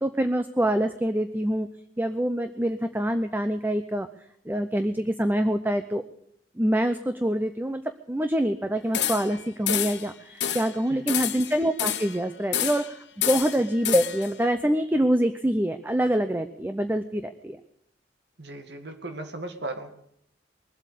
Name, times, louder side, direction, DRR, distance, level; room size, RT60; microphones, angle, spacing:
voice 1, 0.0-1.7 2.0-4.1 4.5-6.0 6.6-7.8 8.1-13.0 13.3-17.6, equal, 10° right, 9 dB, 0.6 m, -25 dB
sound 1, 8.9-9.4 9.7-10.1 10.4-10.7 11.1-12.2 12.5-12.9 13.2-14.3, left 10 dB, 75° left, 1.2 m, -28 dB
voice 2, 10.9-11.3 18.4-19.9, right 2 dB, 70° right, 5 dB, 2.0 m, -37 dB
21.5 x 8.1 x 8.2 m, 0.76 s
head